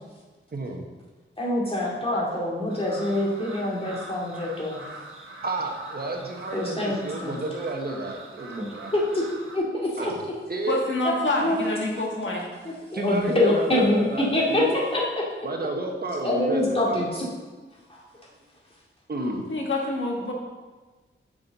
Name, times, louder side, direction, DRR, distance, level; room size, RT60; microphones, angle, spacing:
voice 1, 0.5-0.8 5.4-8.9 10.0-10.2 10.5-10.8 12.9-14.8 15.4-17.0 19.1-19.5, right 2 dB, 50° right, 2 dB, 1.1 m, -31 dB
voice 2, 1.4-4.8 6.5-7.4 8.5-8.7 8.9-9.2 9.5-10.1 11.0-11.6 12.6-14.6 14.9-15.3 16.2-17.3 17.9-18.0, left 1 dB, 25° left, -4 dB, 2.2 m, -25 dB
sound 1, 2.7-9.6, right 2 dB, 75° right, 1.2 m, -43 dB
voice 3, 10.7-12.5 19.5-20.3, left 1 dB, 65° left, -2 dB, 1.7 m, -27 dB
9.5 x 6.3 x 4.0 m, 1.3 s
wide cardioid pair, 120°, 21 cm